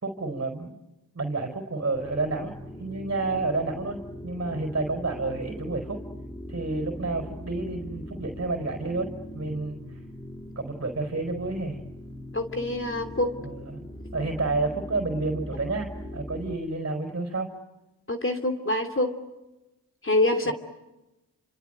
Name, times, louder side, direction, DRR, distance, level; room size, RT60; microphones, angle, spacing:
voice 1, 0.0-0.8 1.1-2.5 2.8-6.0 6.5-9.8 10.5-11.8 13.4-13.8 14.1-17.5 20.4-20.5, right 3 dB, 35° right, 5 dB, 4.7 m, -30 dB
sound 1, 1.9-16.6, equal, 10° left, 3.0 m, -40 dB
voice 2, 12.3-13.3 18.1-19.1 20.0-20.5, left 1 dB, 30° left, 5 dB, 3.0 m, -25 dB
29.0 x 26.0 x 8.0 m, 1.0 s
cardioid pair, 60°, 41 cm